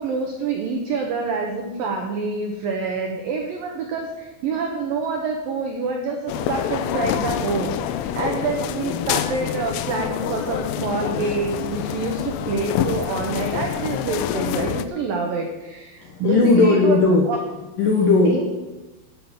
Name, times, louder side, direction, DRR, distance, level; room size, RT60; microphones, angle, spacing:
voice 1, 0.0-17.0 17.3-17.4 18.3-18.4, right 4 dB, 80° right, 2 dB, 2.0 m, -27 dB
sound 1, 6.3-14.9, left 11 dB, 90° left, 3.2 m, -27 dB
voice 2, 16.0-18.4, left 3 dB, 75° left, 0 dB, 2.0 m, -18 dB
11.5 x 8.6 x 7.1 m, 1.1 s
omnidirectional pair, 5.8 m